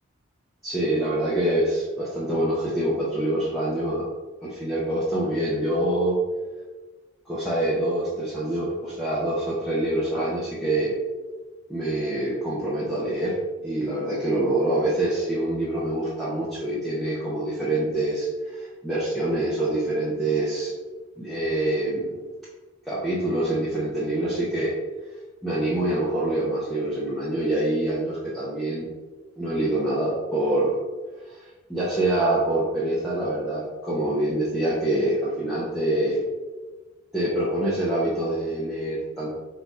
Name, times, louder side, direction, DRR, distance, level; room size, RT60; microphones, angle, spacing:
voice 1, 0.6-4.0 4.4-6.2 7.3-10.9 11.7-20.7 21.2-22.2 22.9-24.7 25.4-28.9 29.4-30.8 31.2-36.2 37.1-39.3, right 1 dB, ahead, -9 dB, 0.8 m, -25 dB
3.9 x 2.8 x 4.6 m, 1.2 s
head